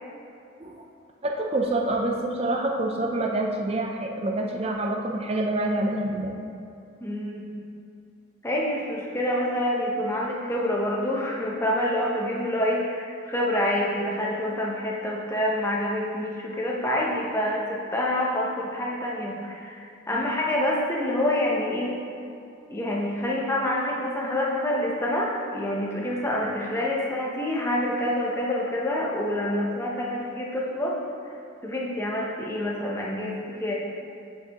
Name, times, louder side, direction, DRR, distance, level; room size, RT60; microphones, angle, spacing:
voice 1, 1.2-6.3 20.1-20.3, right 2 dB, 30° right, 1 dB, 0.5 m, -27 dB
voice 2, 7.0-7.4 8.4-21.9 22.7-31.0 31.6-33.7, left 1 dB, 10° left, -3 dB, 0.7 m, -27 dB
8.2 x 5.2 x 2.9 m, 2.6 s
head